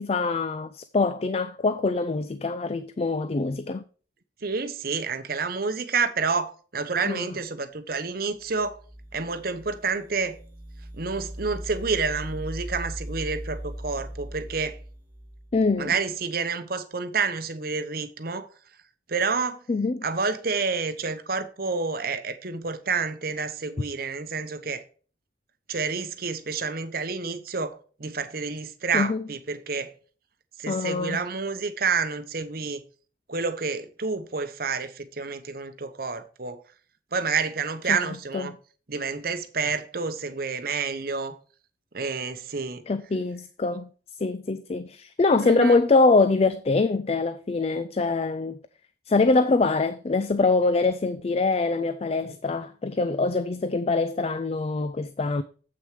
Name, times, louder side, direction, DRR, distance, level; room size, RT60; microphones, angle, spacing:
voice 1, 0.0-3.8 7.1-7.3 15.5-15.9 19.7-20.0 28.9-29.2 30.7-31.2 37.9-38.5 42.9-43.9 44.2-48.6 49.1-55.4, left 3 dB, 35° left, 0.4 m, -24 dB
voice 2, 4.4-8.8 9.1-10.4 11.0-14.8 15.8-18.5 19.1-19.6 20.0-24.8 25.7-29.9 30.6-32.8 33.3-36.6 37.1-38.5 38.9-41.4 41.9-42.8 45.4-45.7 52.3-52.4, right 4 dB, 55° right, 0.9 m, -29 dB
sound 1, 8.4-15.9, right 1 dB, 10° right, 2.5 m, -39 dB
7.9 x 6.3 x 4.8 m
head